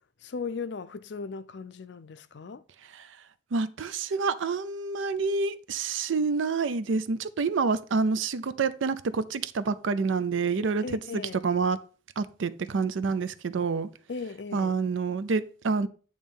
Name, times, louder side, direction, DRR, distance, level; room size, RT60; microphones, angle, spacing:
voice 1, 0.2-2.6 10.8-11.4 14.1-14.8, left 4 dB, 65° left, 0.5 m, -37 dB
voice 2, 3.5-11.0 11.4-11.8 12.2-13.9 14.5-15.9, right 4 dB, 85° right, 0.5 m, -28 dB
8.8 x 3.2 x 5.4 m
head